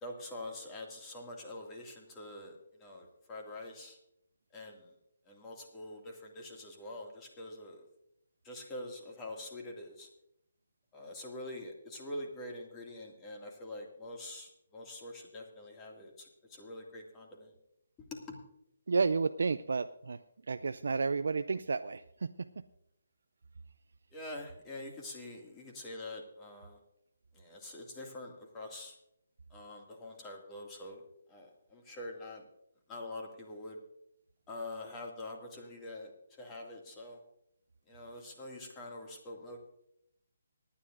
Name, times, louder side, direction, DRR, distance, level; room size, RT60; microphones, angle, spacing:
voice 1, 0.0-4.0 4.5-4.9 5.3-7.8 8.4-10.1 10.9-17.5 18.3-18.4 24.1-26.8 27.3-29.0 29.5-31.0 31.3-32.4 32.9-33.8 34.5-36.1 36.4-37.2 37.9-39.6, left 1 dB, 20° left, 0 dB, 2.2 m, -45 dB
voice 2, 18.9-20.2 20.5-22.5, right 4 dB, 65° right, 9 dB, 0.4 m, -31 dB
25.5 x 9.9 x 2.6 m, 0.77 s
figure-of-eight pair, 145°, 0 cm